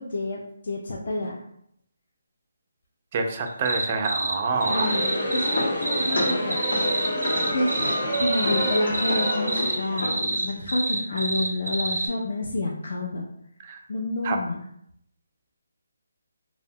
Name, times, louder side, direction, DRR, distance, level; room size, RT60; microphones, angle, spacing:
voice 1, 0.0-1.4 4.7-5.0 5.3-6.6 7.5-7.7 8.2-13.2 13.9-14.6, left 2 dB, 60° left, -1 dB, 0.4 m, -28 dB
voice 2, 3.1-5.0 13.7-13.8 14.2-14.4, right 4 dB, 30° right, 4 dB, 0.3 m, -26 dB
sound 1, 3.5-4.4 4.6-12.1, right 2 dB, 90° right, 0.5 m, -27 dB
Crowd, 4.4-10.1, equal, 30° left, 0.8 m, -29 dB
sound 2, 4.8-10.6, left 2 dB, 90° left, 0.9 m, -33 dB
2.7 x 2.0 x 2.6 m, 0.72 s
hypercardioid pair, 170°, 0 cm